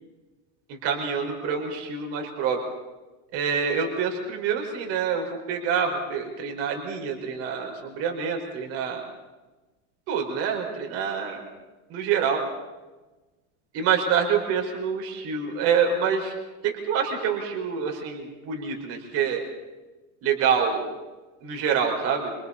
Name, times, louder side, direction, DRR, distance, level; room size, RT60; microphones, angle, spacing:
voice 1, 0.7-2.6 3.3-9.0 10.1-11.5 11.9-12.4 13.7-16.3 16.6-19.4 20.2-20.9 21.4-22.3, right 6 dB, 40° right, 2 dB, 5.6 m, -26 dB
28.5 x 28.0 x 4.4 m, 1.2 s
cardioid pair, 175°, 36 cm